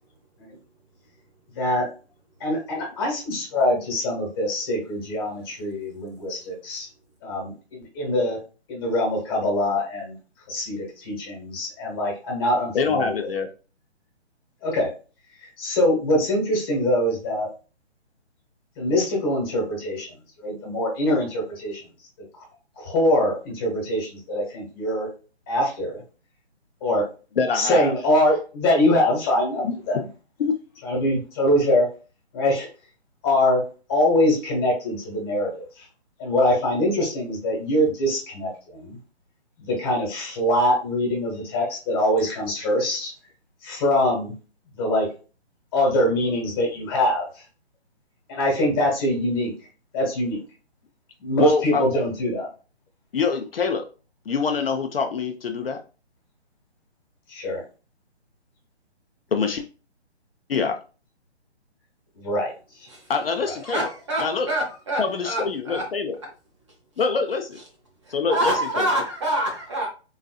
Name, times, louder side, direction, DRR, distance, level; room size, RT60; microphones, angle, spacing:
voice 1, 1.5-1.8 2.4-6.9 7.2-8.4 8.7-10.2 10.5-13.3 14.6-14.9 15.4-17.5 18.8-20.1 20.4-21.8 22.8-25.1 25.5-26.0 26.8-27.0 27.5-30.0 30.8-31.9 32.3-32.7 33.2-33.6 33.9-35.8 36.2-39.0 39.6-43.1 43.6-44.3 44.8-45.1 45.7-47.4 48.3-49.5 49.9-50.4 51.2-52.5 57.3-57.6 62.2-62.5 62.8-62.9, left 1 dB, 20° left, -1 dB, 1.2 m, -23 dB
voice 2, 12.7-13.5 27.4-27.9 29.6-29.7 30.4-30.6 51.4-52.0 53.1-53.8 54.3-55.8 59.3-59.6 60.5-60.8 63.1-63.8 64.2-64.5 65.0-66.2 67.0-67.6 68.1-68.9, left 5 dB, 55° left, 5 dB, 0.5 m, -24 dB
voice 3, 63.6-65.8 68.1-69.9, right 1 dB, 25° right, -1 dB, 0.7 m, -26 dB
3.9 x 2.7 x 2.3 m, 0.34 s
hypercardioid pair, 155°, 34 cm